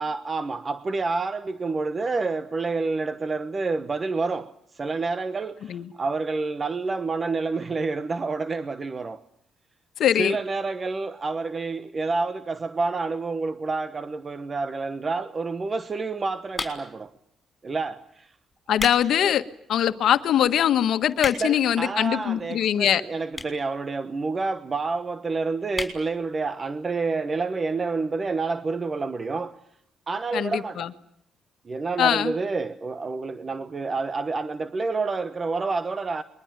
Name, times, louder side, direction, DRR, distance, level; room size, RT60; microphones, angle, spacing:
voice 1, 0.0-9.2 10.2-17.1 17.6-18.3 21.4-29.6 30.1-30.9 31.6-36.2, right 3 dB, 35° right, 1.1 m, -28 dB
voice 2, 10.0-10.4 18.7-19.4 19.7-23.0 30.3-30.9 32.0-32.3, left 10 dB, 70° left, 1.4 m, -22 dB
sound 1, 16.5-17.1 17.8-18.0 18.5-19.0 19.5-19.6 20.2-20.3 20.5-20.6 20.8-21.7 22.5-22.6 23.3-23.7 24.0-24.1 24.3-24.4 24.6-24.7 25.0-25.2 25.7-26.0 26.4-26.5 26.7-26.8, left 3 dB, 25° left, 6.1 m, -32 dB
28.5 x 22.5 x 9.1 m
cardioid pair, 90°, 0 cm